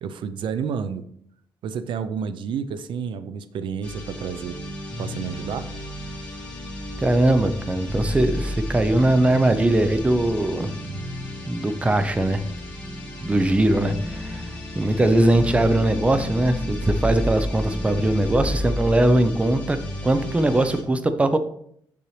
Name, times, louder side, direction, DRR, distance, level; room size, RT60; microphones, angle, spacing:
voice 1, 0.0-1.0 1.6-4.6 5.0-5.7, right 7 dB, 70° right, 12 dB, 0.6 m, -30 dB
sound 1, 3.8-20.8, left 1 dB, 15° left, 3.4 m, -32 dB
voice 2, 7.0-10.7 11.5-12.4 13.2-14.4 14.7-19.8 20.0-21.4, right 1 dB, 15° right, 9 dB, 0.6 m, -20 dB
7.2 x 6.9 x 3.2 m, 0.66 s
cardioid pair, 130°, 9 cm